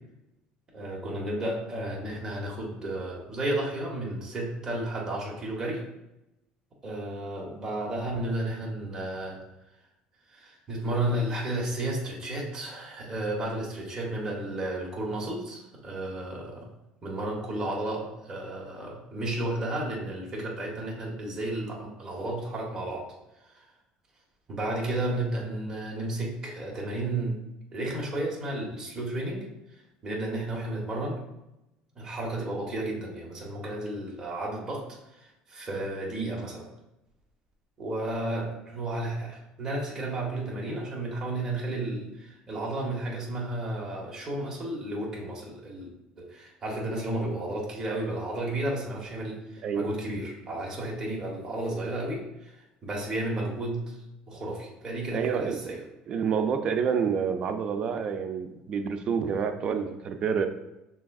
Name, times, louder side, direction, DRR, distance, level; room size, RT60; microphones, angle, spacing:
voice 1, 0.7-5.8 6.8-9.4 10.3-16.7 17.0-23.1 23.5-23.6 24.5-27.4 27.7-29.5 30.0-31.2 32.0-34.9 35.1-36.7 37.8-45.9 46.2-52.6 52.8-54.0 54.3-55.8, right 1 dB, 20° right, -3 dB, 1.0 m, -32 dB
voice 2, 55.1-60.5, right 6 dB, 35° right, 7 dB, 0.4 m, -28 dB
5.7 x 3.4 x 2.3 m, 0.92 s
cardioid pair, 160°, 3 cm